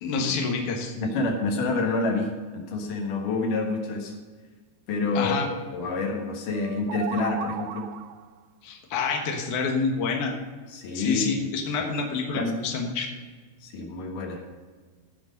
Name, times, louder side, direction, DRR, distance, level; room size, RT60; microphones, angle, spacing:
voice 1, 0.0-0.9 5.2-5.5 8.6-10.3 10.9-13.1, left 4 dB, 80° left, 1 dB, 1.7 m, -27 dB
voice 2, 1.0-4.2 4.9-5.4 5.7-7.9 10.7-11.5 11.8-11.9 12.4-12.5 13.6-14.4, left 3 dB, 65° left, 2 dB, 2.2 m, -28 dB
sound 1, 6.5-8.3, right 10 dB, 90° right, 3.2 m, -36 dB
17.0 x 6.2 x 5.2 m, 1.4 s
omnidirectional pair, 5.7 m